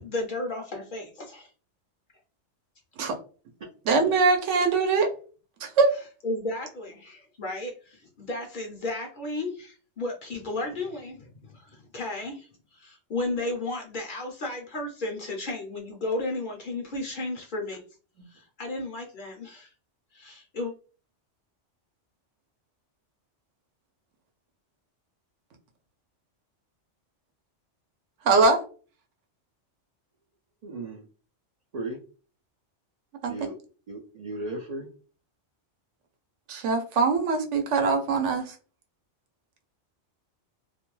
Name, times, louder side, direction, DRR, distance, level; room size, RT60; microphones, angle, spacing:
voice 1, 0.0-1.5 5.9-17.8 18.3-19.7 20.1-20.7, left 2 dB, 55° left, 1 dB, 0.7 m, -34 dB
voice 2, 3.9-5.1 5.6-5.9 28.3-28.6 33.2-33.5 36.5-38.5, right 4 dB, 80° right, 5 dB, 0.9 m, -22 dB
voice 3, 30.6-31.0 31.7-32.0 33.3-33.5 33.9-34.9, right 2 dB, 65° right, 1 dB, 0.4 m, -35 dB
2.4 x 2.1 x 3.0 m, 0.38 s
omnidirectional pair, 1.2 m